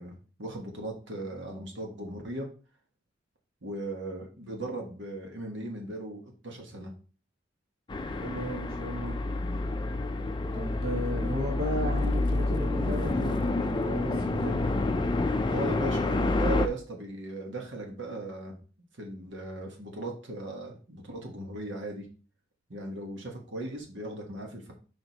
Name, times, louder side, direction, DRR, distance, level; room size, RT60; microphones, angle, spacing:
voice 1, 0.0-2.5 3.6-6.9 15.5-18.6 19.0-22.1 22.7-24.7, right 2 dB, 70° right, 1 dB, 1.4 m, -38 dB
sound 1, 7.9-16.7, left 2 dB, 25° left, 0.4 m, -28 dB
voice 2, 8.2-9.2 10.5-14.7, equal, 55° right, 0 dB, 1.3 m, -35 dB
5.0 x 4.7 x 4.1 m, 0.38 s
head